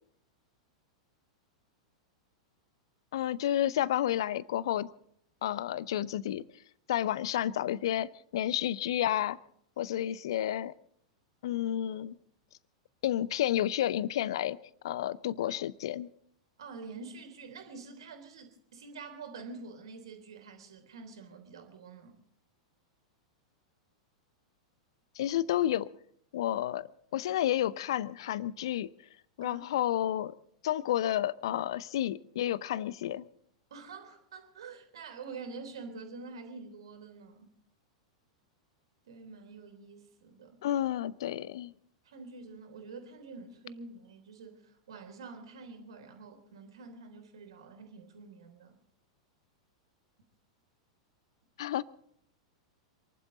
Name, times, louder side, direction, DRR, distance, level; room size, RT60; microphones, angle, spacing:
voice 1, 3.1-4.9 5.4-6.4 6.9-9.4 9.8-10.7 11.4-12.2 13.0-14.6 14.8-16.1 25.2-25.9 26.3-28.9 29.4-30.3 30.6-33.3 40.6-41.7 51.6-51.8, left 12 dB, 55° left, 20 dB, 0.7 m, -31 dB
voice 2, 16.6-22.2 29.4-29.6 33.7-37.5 39.1-40.6 42.0-48.8, right 4 dB, 60° right, 5 dB, 3.5 m, -47 dB
27.5 x 11.5 x 4.0 m, 0.68 s
figure-of-eight pair, 95°, 3 cm